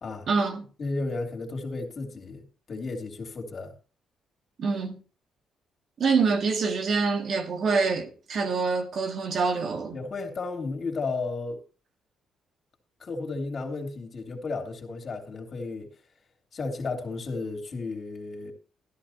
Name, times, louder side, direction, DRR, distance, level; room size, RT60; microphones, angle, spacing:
voice 1, 0.3-0.6 4.6-5.0 6.0-10.0, right 4 dB, 55° right, 1.8 m, -26 dB
voice 2, 0.8-3.7 9.9-11.6 13.0-15.9 16.5-18.5, left 3 dB, 45° left, 3.1 m, -33 dB
13.5 x 11.5 x 3.0 m
cardioid pair, 90°, 0 cm